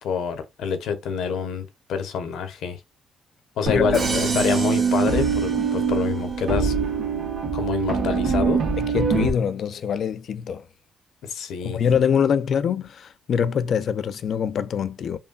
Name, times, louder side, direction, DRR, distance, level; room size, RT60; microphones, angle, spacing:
voice 1, 0.0-2.8 3.6-6.7 7.5-8.6 11.2-11.8, left 6 dB, 80° left, 0.9 m, -27 dB
voice 2, 3.7-4.0 8.8-10.7 11.6-15.2, left 7 dB, 60° left, 0.4 m, -24 dB
sound 1, 3.7-9.3, right 5 dB, 60° right, 1.3 m, -23 dB
Crash cymbal, 3.9-6.1, right 3 dB, 40° right, 1.1 m, -32 dB
5.5 x 2.2 x 2.3 m
cardioid pair, 90°, 0 cm